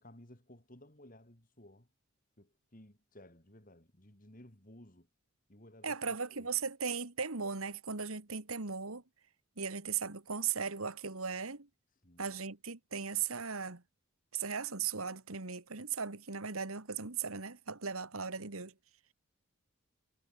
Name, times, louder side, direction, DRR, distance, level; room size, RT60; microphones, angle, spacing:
voice 1, 0.0-1.9 2.4-5.1 5.5-6.5 12.0-12.4, left 1 dB, 40° left, 3.3 m, -57 dB
voice 2, 5.8-9.0 9.6-11.7 12.2-13.8 14.3-18.7, right 6 dB, 80° right, 2.0 m, -37 dB
head